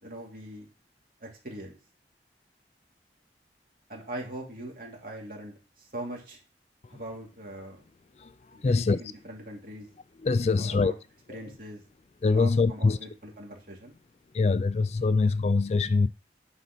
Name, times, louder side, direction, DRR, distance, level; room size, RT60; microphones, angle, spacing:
voice 1, 0.0-0.7 1.2-1.8 3.9-6.4 6.9-7.9 8.5-9.9 10.5-10.9 11.3-11.8 12.3-13.1 13.4-14.0, right 1 dB, 50° right, 2.7 m, -41 dB
voice 2, 8.1-9.0 10.2-10.9 11.3-11.6 12.2-13.0 14.3-16.1, left 4 dB, 35° left, 0.3 m, -24 dB
9.8 x 4.2 x 6.0 m
head